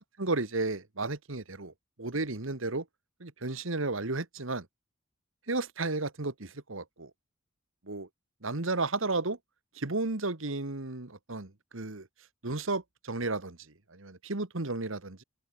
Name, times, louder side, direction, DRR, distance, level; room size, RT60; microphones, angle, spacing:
voice 1, 0.2-1.7 2.0-2.8 3.2-4.7 5.5-7.1 7.8-8.1 8.4-9.4 9.7-12.1 12.4-13.6 13.9-15.2, right 3 dB, 65° right, 1.7 m, -33 dB
open air
head